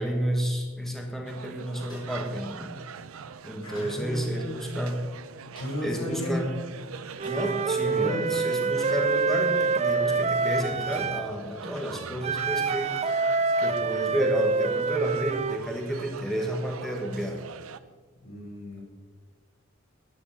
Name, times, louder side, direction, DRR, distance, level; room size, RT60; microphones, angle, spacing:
voice 1, 0.0-2.7 3.4-5.0 5.8-6.6 7.2-13.0 13.6-17.4, equal, ahead, 1 dB, 1.3 m, -31 dB
sound 1, 1.3-17.8, right 6 dB, 85° right, 0.6 m, -43 dB
sound 2, 1.9-2.3 3.7-4.1 5.5-6.0 7.2-7.6 8.8-9.1 10.9-11.3 12.3-12.4 13.0-13.4 14.6-14.9 16.5-16.7, left 1 dB, 20° left, 5.0 m, -52 dB
voice 2, 3.6-4.6 5.6-6.5 7.8-8.4 18.2-18.8, equal, 85° left, -2 dB, 4.9 m, -34 dB
Wind instrument woodwind instrument, 7.2-11.3 12.2-15.6, right 4 dB, 30° right, 0.4 m, -26 dB
12.5 x 9.9 x 5.6 m, 1.3 s
head